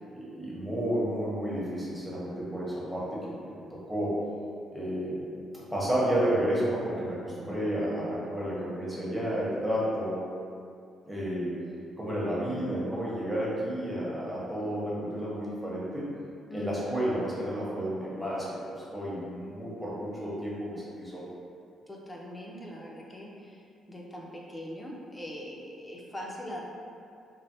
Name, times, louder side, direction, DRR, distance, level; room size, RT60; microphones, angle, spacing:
voice 1, 0.1-3.6 3.9-4.1 4.7-5.2 5.5-10.2 11.1-11.5 12.0-16.0 16.5-21.2, equal, 5° right, -7 dB, 0.9 m, -31 dB
voice 2, 16.5-17.1 21.9-26.6, equal, 15° left, -3 dB, 0.5 m, -41 dB
3.1 x 2.1 x 2.8 m, 2.4 s
cardioid pair, 90°, 0 cm